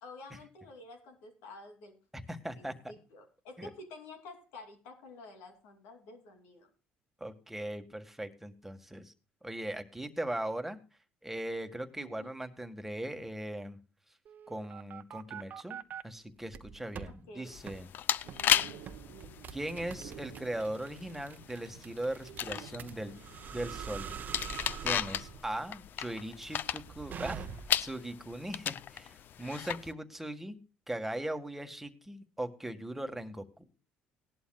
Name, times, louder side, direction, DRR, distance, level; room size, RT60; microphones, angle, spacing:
voice 1, 0.0-2.0 2.5-6.7 12.0-12.3 17.1-17.5 18.4-18.8, left 3 dB, 85° left, 4 dB, 3.0 m, -50 dB
voice 2, 2.1-2.7 3.6-3.7 7.2-9.1 9.4-10.8 11.2-13.8 14.5-15.8 16.0-17.9 19.5-24.2 24.8-27.5 27.8-30.6 30.9-33.7, right 1 dB, 5° right, 7 dB, 1.7 m, -39 dB
sound 1, 14.3-16.0 16.5-17.1 17.7-17.8 18.3-18.5 18.9-27.9, right 7 dB, 50° right, 0.9 m, -44 dB
sound 2, 17.5-29.9, left 10 dB, 60° left, 0.5 m, -36 dB
sound 3, 18.2-25.4, right 10 dB, 85° right, 0.9 m, -51 dB
18.0 x 11.5 x 2.3 m, 0.32 s
supercardioid pair, 75°, 4 cm